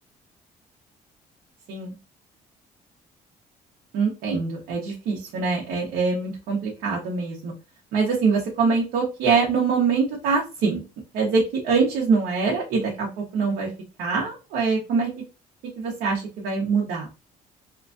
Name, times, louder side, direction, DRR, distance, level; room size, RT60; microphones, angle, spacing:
voice 1, 3.9-7.5 7.9-10.8 11.1-13.7 14.0-15.1 15.8-17.1, right 4 dB, 85° right, -2 dB, 0.8 m, -24 dB
3.0 x 2.3 x 2.4 m, 0.30 s
cardioid pair, 95°, 16 cm